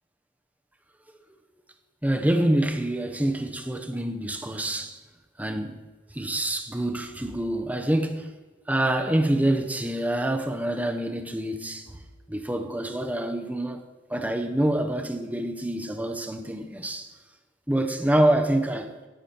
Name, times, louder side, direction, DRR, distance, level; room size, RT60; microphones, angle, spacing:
voice 1, 2.0-4.9 5.4-5.8 6.2-8.2 8.7-11.8 12.3-13.8 14.1-17.1 17.7-18.9, right 1 dB, 10° right, 0.8 m, -26 dB
11.5 x 7.0 x 4.4 m
head